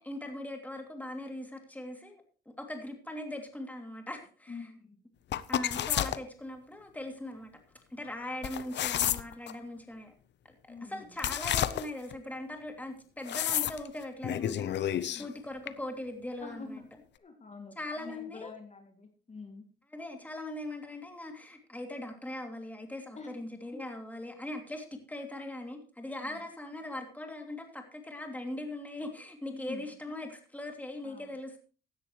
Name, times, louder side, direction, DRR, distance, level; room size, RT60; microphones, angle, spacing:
voice 1, 0.0-2.2 2.6-4.7 5.5-7.5 7.9-10.1 10.9-16.8 17.8-18.5 19.9-31.6, left 1 dB, 10° left, 3 dB, 2.9 m, -40 dB
voice 2, 4.5-5.0 10.7-11.1 15.0-15.3 16.4-16.9 17.2-19.7 23.1-23.3 26.2-26.4 29.5-29.9 31.0-31.3, left 4 dB, 35° left, 4 dB, 2.6 m, -46 dB
sound 1, 5.3-6.2 8.4-9.5 11.2-12.1 13.2-13.9 14.2-15.3 15.7-15.8, left 11 dB, 60° left, 0.7 m, -30 dB
16.0 x 10.5 x 3.2 m, 0.38 s
cardioid pair, 90°, 20 cm